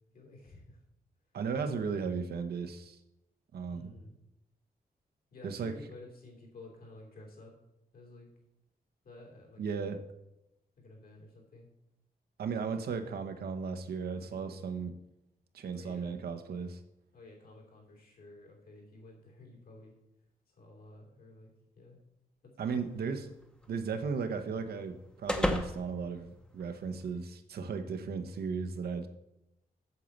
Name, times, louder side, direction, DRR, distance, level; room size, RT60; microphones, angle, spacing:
voice 1, 0.1-0.8 3.7-4.2 5.3-7.5 7.9-8.3 9.0-9.9 10.8-11.7 14.1-14.8 15.7-16.2 17.1-20.0 20.5-22.0 22.7-22.8, left 2 dB, 70° left, 0 dB, 3.1 m, -53 dB
voice 2, 1.3-3.0 3.5-3.9 5.4-5.7 9.6-10.0 12.4-15.0 15.5-16.8 22.6-23.3 23.7-29.1, right 5 dB, 90° right, 6 dB, 1.0 m, -35 dB
sound 1, 22.7-27.1, left 1 dB, 5° left, 0.7 m, -38 dB
8.2 x 7.2 x 5.3 m, 0.90 s
wide cardioid pair, 155°, 16 cm